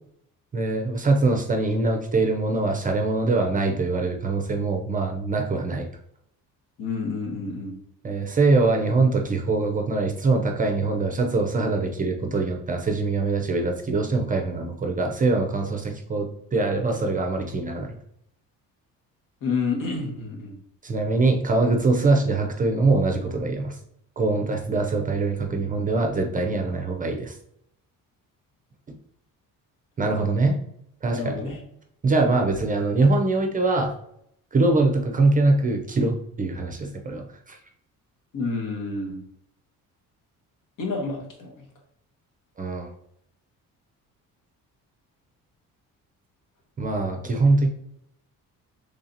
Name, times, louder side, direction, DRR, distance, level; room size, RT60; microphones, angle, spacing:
voice 1, 0.5-5.9 8.0-17.9 20.8-23.8 24.2-27.3 30.0-30.6 31.0-31.3 32.0-33.9 34.5-37.6 42.6-42.9 46.8-47.7, right 3 dB, 25° right, 3 dB, 0.5 m, -23 dB
voice 2, 6.8-7.8 19.4-20.6 31.1-31.6 38.3-39.2 40.8-41.5, left 4 dB, 65° left, 1 dB, 1.2 m, -29 dB
3.2 x 2.8 x 3.8 m, 0.73 s
cardioid pair, 125°, 34 cm